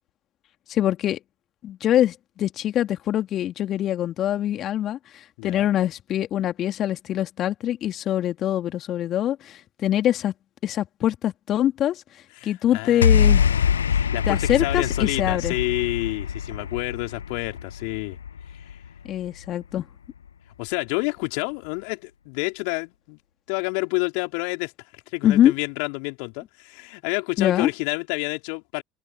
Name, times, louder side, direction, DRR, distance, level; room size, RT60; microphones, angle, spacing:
voice 1, 0.7-1.2 1.6-10.3 10.6-12.0 12.4-13.4 14.3-15.6 19.1-19.9 25.2-25.5 27.4-27.7, left 12 dB, 45° left, 2.6 m, -24 dB
voice 2, 5.4-5.7 12.4-18.2 18.5-18.8 20.6-23.2 23.5-28.8, left 36 dB, 65° left, 3.7 m, -29 dB
sound 1, 13.0-19.5, left 7 dB, 85° left, 0.8 m, -23 dB
figure-of-eight pair, 65°, 0 cm